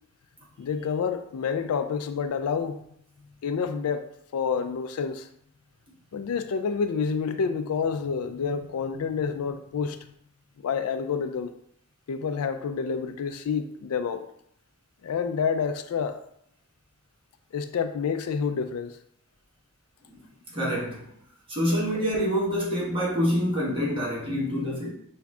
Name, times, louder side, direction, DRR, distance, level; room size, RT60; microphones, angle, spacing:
voice 1, 0.6-2.9 3.4-5.3 6.1-10.0 10.6-11.5 12.1-14.2 15.0-16.2 17.5-19.0 21.7-21.8, left 6 dB, 70° left, 0.4 m, -28 dB
voice 2, 20.5-21.0 21.5-24.9, equal, 25° right, 1.4 m, -26 dB
6.9 x 2.7 x 2.3 m
head